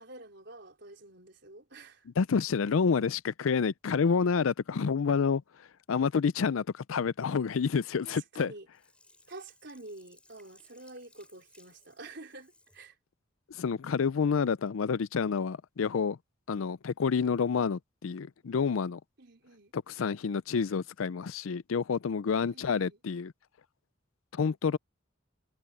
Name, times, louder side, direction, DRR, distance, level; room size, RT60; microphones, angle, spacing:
voice 1, 0.0-2.1 8.0-8.7 9.3-13.0 19.2-19.7 22.5-23.0, right 2 dB, 55° right, 4.5 m, -48 dB
voice 2, 2.2-8.5 13.5-16.2 16.5-19.0 19.7-23.3 24.3-24.8, left 5 dB, 85° left, 0.5 m, -29 dB
Sink (filling or washing), 8.7-12.9 13.4-13.5, left 2 dB, 5° left, 5.6 m, -62 dB
head